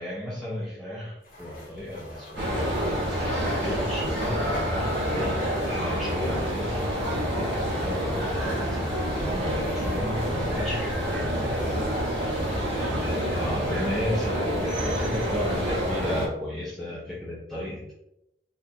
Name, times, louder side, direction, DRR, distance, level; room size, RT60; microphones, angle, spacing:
voice 1, 0.0-6.7 7.3-11.6 12.3-17.9, left 1 dB, ahead, -8 dB, 0.6 m, -34 dB
sound 1, 1.2-14.4, equal, 50° left, 1.0 m, -44 dB
sound 2, 2.4-16.3, equal, 90° right, 1.3 m, -28 dB
4.3 x 2.5 x 2.7 m, 0.83 s
head